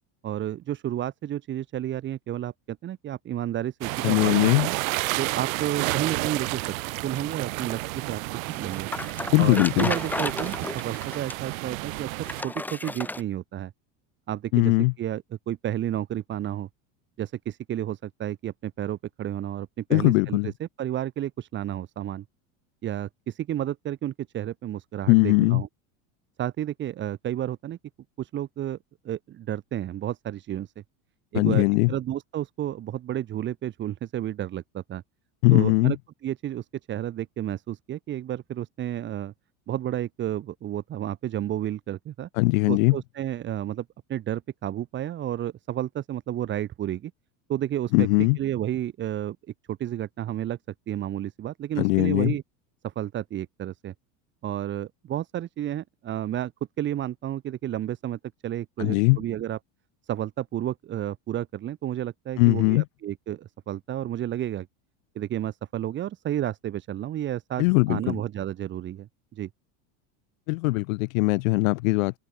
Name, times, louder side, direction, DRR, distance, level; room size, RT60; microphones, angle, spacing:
voice 1, 0.2-4.7 5.2-6.6 7.0-8.2 8.5-8.9 9.4-12.1 12.4-13.7 14.3-16.7 17.2-22.2 22.8-25.7 26.4-27.8 28.2-28.8 29.0-30.8 31.3-35.0 35.5-36.0 36.2-39.3 39.7-42.3 42.7-47.1 47.5-49.4 49.7-50.6 50.9-52.4 52.8-53.9 54.4-56.5 56.8-59.6 60.1-64.7 65.1-69.5, right 12 dB, 25° right, 4.7 m, -31 dB
sound 1, 3.8-12.4, right 23 dB, 75° right, 1.2 m, -31 dB
voice 2, 4.0-4.7 9.3-9.9 14.5-14.9 19.9-20.5 25.1-25.6 31.3-31.9 35.4-35.9 42.4-43.0 47.9-48.4 51.8-52.3 58.8-59.2 62.4-62.8 67.6-68.2 70.5-72.2, left 25 dB, 75° left, 0.7 m, -20 dB
sound 2, 8.5-11.5 12.3-13.2, left 2 dB, 5° left, 3.5 m, -32 dB
cardioid pair, 175°, 41 cm